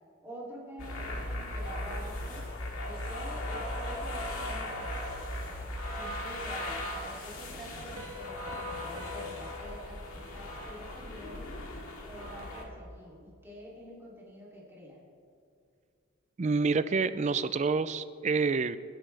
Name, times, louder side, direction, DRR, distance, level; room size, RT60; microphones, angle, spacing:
voice 1, 0.2-2.5 2.8-5.0 5.9-10.0 10.3-11.5 12.0-15.0, equal, 10° right, -6 dB, 2.9 m, -47 dB
sound 1, 0.8-12.6, left 1 dB, 85° left, 2.1 m, -38 dB
Piano, 8.0-11.4, left 4 dB, 80° right, 1.8 m, -46 dB
voice 2, 16.4-18.8, right 4 dB, 35° right, 13 dB, 0.4 m, -28 dB
27.5 x 9.8 x 3.4 m, 2.3 s
head